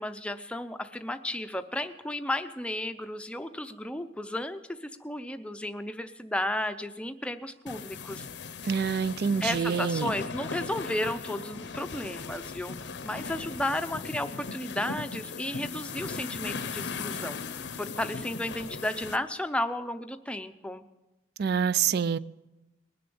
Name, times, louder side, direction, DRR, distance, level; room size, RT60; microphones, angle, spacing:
voice 1, 0.0-8.3 9.4-17.4 17.8-20.9, left 1 dB, 5° left, 0.6 m, -33 dB
sound 1, 7.7-19.2, left 5 dB, 65° left, 0.7 m, -38 dB
voice 2, 8.6-10.1 21.4-22.2, right 7 dB, 55° right, 0.4 m, -26 dB
20.0 x 6.8 x 6.9 m
head